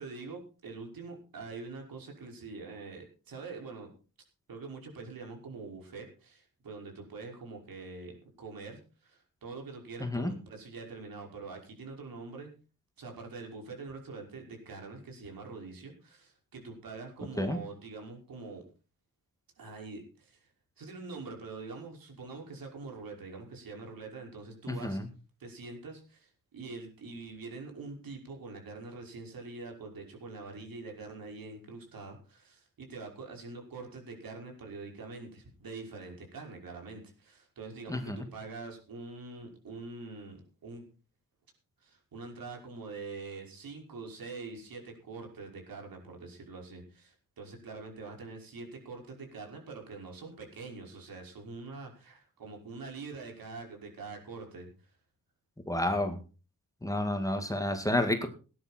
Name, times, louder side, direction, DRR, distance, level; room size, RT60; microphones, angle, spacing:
voice 1, 0.0-3.9 4.5-12.5 13.0-18.6 19.6-20.5 20.8-25.0 25.4-40.9 41.8-54.9, right 3 dB, 90° right, 2 dB, 5.6 m, -44 dB
voice 2, 10.0-10.3 17.4-17.6 24.7-25.1 37.9-38.2 55.7-56.2 56.8-58.3, left 1 dB, 10° left, 6 dB, 2.0 m, -30 dB
19.0 x 10.5 x 4.4 m, 0.35 s
wide cardioid pair, 155°, 34 cm